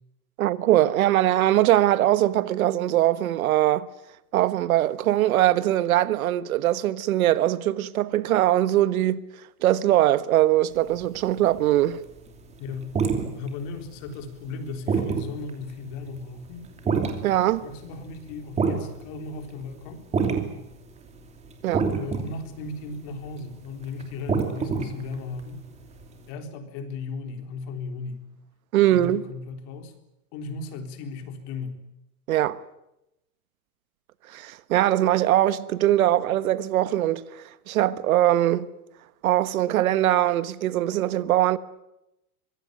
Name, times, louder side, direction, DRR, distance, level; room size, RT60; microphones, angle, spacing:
voice 1, 0.4-3.9 4.3-9.2 9.6-12.0 17.2-17.6 21.6-21.9 28.7-29.2 32.3-32.6 34.3-38.7 39.2-41.6, right 13 dB, 65° right, 1.4 m, -21 dB
sound 1, 10.8-11.8 12.2-19.8 20.1-20.7 21.0-26.2, right 5 dB, 15° right, 2.8 m, -28 dB
voice 2, 12.6-13.0 13.3-16.7 17.6-20.1 21.9-25.6 26.3-28.2 28.9-29.9 30.3-31.8, left 4 dB, 40° left, 4.0 m, -36 dB
25.0 x 21.5 x 9.3 m
supercardioid pair, 165°, 45 cm